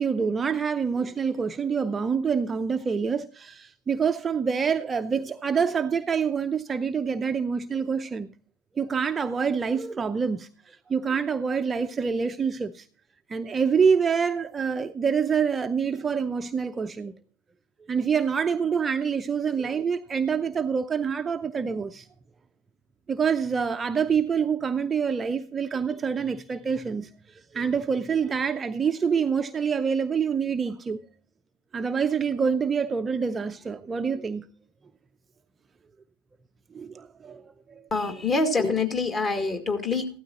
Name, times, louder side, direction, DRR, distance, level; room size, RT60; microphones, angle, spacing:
voice 1, 0.0-8.3 8.8-12.9 13.3-17.1 17.9-22.1 23.1-31.0 31.7-34.5 36.7-37.9, right 6 dB, 20° right, 0.6 m, -26 dB
voice 2, 37.9-40.2, left 3 dB, 25° left, 2.2 m, -25 dB
15.5 x 13.0 x 2.9 m
figure-of-eight pair, 85°, 0 cm